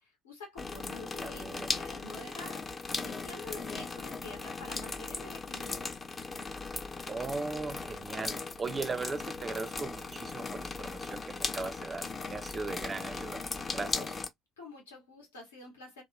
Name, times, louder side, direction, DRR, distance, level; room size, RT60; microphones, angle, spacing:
voice 1, 0.0-6.0 13.7-14.1 14.6-16.0, left 2 dB, 75° left, 1.1 m, -48 dB
sound 1, 0.6-14.3, left 4 dB, 25° left, 0.5 m, -38 dB
voice 2, 1.2-1.7 7.1-13.4 13.7-14.0, right 4 dB, 25° right, 0.4 m, -38 dB
2.8 x 2.4 x 2.3 m
figure-of-eight pair, 55°, 0 cm